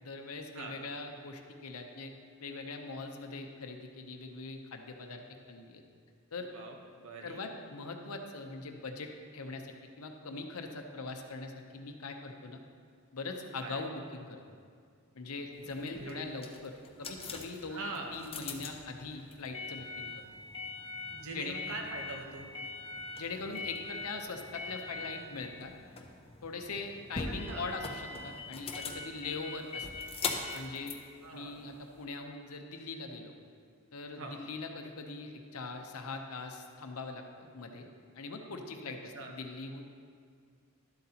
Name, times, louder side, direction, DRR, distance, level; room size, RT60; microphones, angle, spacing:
voice 1, 0.0-2.1 2.4-5.8 6.3-6.5 7.2-12.6 13.1-14.4 15.1-16.7 17.0-17.9 18.1-20.1 21.3-21.6 23.2-25.7 26.4-29.9 30.5-31.0 31.3-33.3 33.9-37.9 38.1-39.8, left 3 dB, 70° left, 4 dB, 0.8 m, -41 dB
voice 2, 6.5-7.5 13.6-13.9 15.8-16.3 17.7-18.1 21.1-22.5 27.3-27.7 31.2-31.5 34.1-34.4 39.1-39.3, right 2 dB, 65° right, 2 dB, 1.0 m, -43 dB
sound 1, 15.6-32.0, left 4 dB, 25° left, 0.6 m, -42 dB
11.5 x 7.8 x 2.9 m, 2.1 s
head